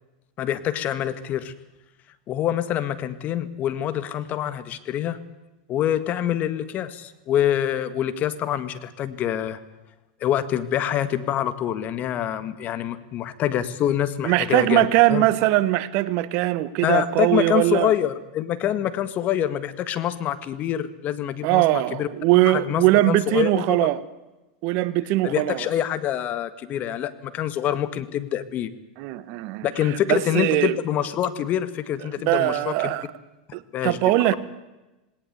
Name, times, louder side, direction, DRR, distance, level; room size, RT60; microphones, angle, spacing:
voice 1, 0.4-1.5 2.3-5.2 5.7-9.6 10.2-15.3 16.8-22.1 22.5-23.8 25.2-28.7 29.6-32.9 33.7-34.0, left 11 dB, 40° left, 13 dB, 1.8 m, -26 dB
voice 2, 14.2-17.9 21.4-24.0 24.6-25.6 29.0-30.8 32.0-33.1 33.5-34.4, right 17 dB, 55° right, 14 dB, 1.4 m, -21 dB
19.0 x 18.5 x 8.2 m, 1.0 s
hypercardioid pair, 120°, 4 cm